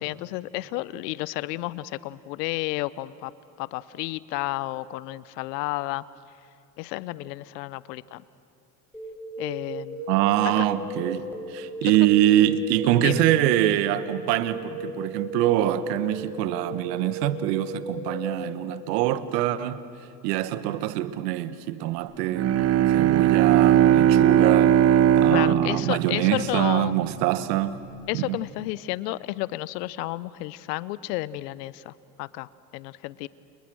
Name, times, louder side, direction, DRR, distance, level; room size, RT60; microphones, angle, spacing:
voice 1, 0.0-3.3 3.6-6.0 6.8-8.2 9.4-10.1 10.4-10.7 11.8-11.9 13.0-13.2 25.3-26.9 28.1-31.9 32.2-33.3, left 18 dB, 75° left, 1.0 m, -31 dB
sound 1, 8.9-18.5, equal, 5° left, 5.6 m, -36 dB
voice 2, 10.1-19.8 20.2-22.5 22.9-24.8 25.2-27.8 28.1-28.4, right 13 dB, 70° right, 1.5 m, -24 dB
Bowed string instrument, 22.3-27.1, right 11 dB, 30° right, 0.6 m, -19 dB
30.0 x 29.5 x 6.4 m
hypercardioid pair, 85°, 50 cm